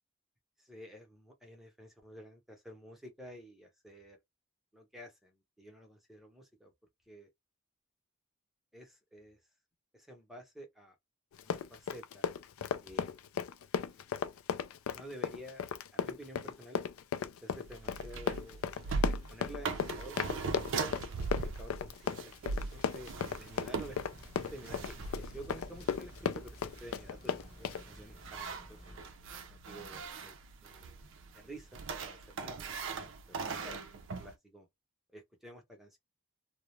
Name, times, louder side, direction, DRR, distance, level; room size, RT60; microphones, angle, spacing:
voice 1, 0.6-4.2 4.7-6.7 7.1-7.3 8.7-9.4 9.9-11.0 11.4-12.3 12.8-13.1 14.9-16.8 17.3-21.0 21.3-24.0 24.4-29.0 29.5-31.0 31.3-32.7 33.3-34.7 35.1-36.0, equal, ahead, 0.7 m, -51 dB
Run, 11.3-27.8, left 7 dB, 70° left, 0.3 m, -35 dB
sound 1, 17.6-34.3, right 4 dB, 60° right, 0.4 m, -40 dB
sound 2, 24.0-29.0, equal, 40° left, 0.9 m, -53 dB
2.3 x 2.0 x 3.0 m
head